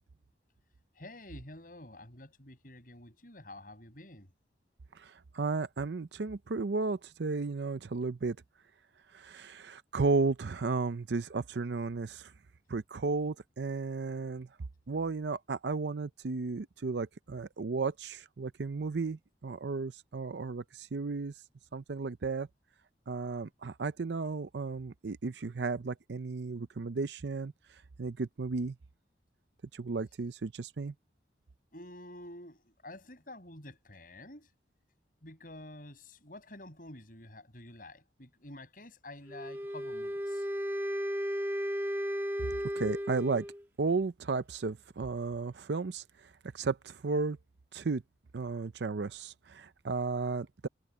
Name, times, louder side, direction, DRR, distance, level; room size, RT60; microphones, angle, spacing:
voice 1, 0.9-4.3 31.7-34.5 35.2-40.5, left 1 dB, 50° left, 7.4 m, -49 dB
voice 2, 4.9-8.4 9.1-12.3 12.7-14.5 14.9-21.3 21.7-22.5 23.1-27.5 28.0-28.8 29.7-30.9 42.8-43.5 43.8-46.0 46.5-47.4 47.7-48.0 48.3-50.7, right 4 dB, 70° right, 0.6 m, -34 dB
Wind instrument woodwind instrument, 39.3-43.6, equal, 15° right, 1.3 m, -34 dB
head